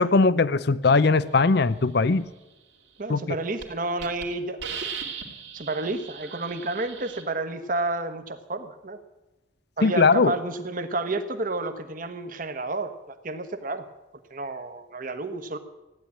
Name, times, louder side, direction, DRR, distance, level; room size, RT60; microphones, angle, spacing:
voice 1, 0.0-2.3 3.1-3.2 9.8-10.3, left 4 dB, 60° left, 17 dB, 0.6 m, -20 dB
voice 2, 3.0-4.6 5.5-9.0 9.8-13.8 14.3-15.6, right 2 dB, 45° right, 9 dB, 1.2 m, -30 dB
Hiss, 3.0-3.2 3.6-3.7 4.0-4.2 4.6-7.2, right 6 dB, 65° right, 2.4 m, -37 dB
15.5 x 10.5 x 8.5 m, 1.0 s
head